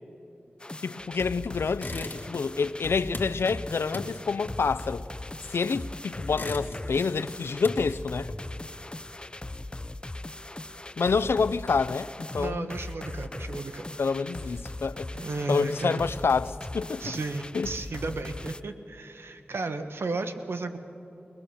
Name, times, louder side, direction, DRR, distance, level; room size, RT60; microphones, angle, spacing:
sound 1, 0.6-18.6, left 2 dB, 25° left, 0.6 m, -39 dB
voice 1, 0.8-5.0 5.5-8.3 11.0-12.7 14.0-15.1 15.5-17.0 17.5-17.7, left 5 dB, 90° left, 0.4 m, -28 dB
sound 2, 1.7-2.5 2.8-5.7 6.1-7.1 7.4-8.7, left 2 dB, 55° left, 1.9 m, -39 dB
voice 2, 12.3-13.9 15.1-16.1 17.0-20.8, right 3 dB, 90° right, 1.2 m, -34 dB
21.5 x 20.5 x 6.9 m
wide cardioid pair, 55°, 4 cm